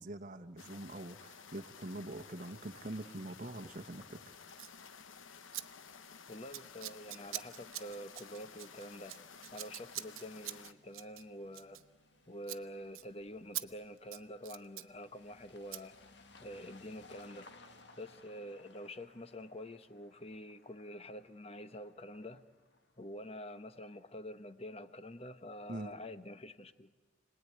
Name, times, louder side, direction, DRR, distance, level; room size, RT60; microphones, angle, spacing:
voice 1, 0.0-4.2 25.7-25.9, right 1 dB, 40° right, 5 dB, 1.1 m, -44 dB
sound 1, 0.6-10.7, left 6 dB, 75° left, 1.0 m, -54 dB
Scissors, 4.5-4.8 5.5-5.6 5.9-6.2 6.5-12.2 12.4-12.6 12.9-13.1 13.5-13.7 14.0-14.9 15.7-15.8, right 15 dB, 90° right, 0.9 m, -44 dB
voice 2, 6.3-9.2 9.5-11.8 12.3-15.9 16.4-17.5 18.0-22.5 23.0-26.9, equal, 30° left, 11 dB, 1.0 m, -47 dB
sound 2, 6.6-24.2, left 3 dB, 55° left, 1.7 m, -63 dB
29.5 x 20.5 x 9.5 m, 1.4 s
head